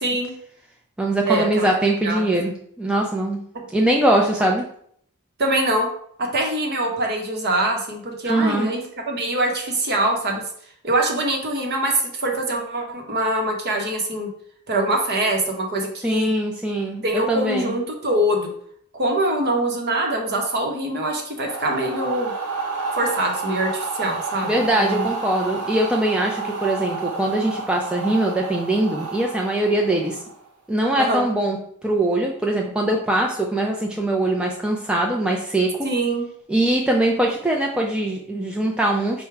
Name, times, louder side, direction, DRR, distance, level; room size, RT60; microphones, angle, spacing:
voice 1, 0.0-0.3 1.3-1.7 2.0-2.3 5.4-5.9 6.2-8.8 9.1-10.4 10.8-14.3 14.7-16.3 17.0-18.5 18.9-22.3 22.9-25.1 31.0-31.2 35.8-36.2, right 1 dB, 50° right, 1 dB, 0.8 m, -23 dB
voice 2, 1.0-2.5 2.8-3.4 3.7-4.6 8.2-8.7 16.0-17.7 24.4-30.2 30.7-31.6 31.8-35.7 36.5-39.2, right 1 dB, 5° right, -1 dB, 0.3 m, -22 dB
sound 1, 21.4-30.5, right 4 dB, 90° right, 1.0 m, -30 dB
4.7 x 2.1 x 4.5 m, 0.63 s
head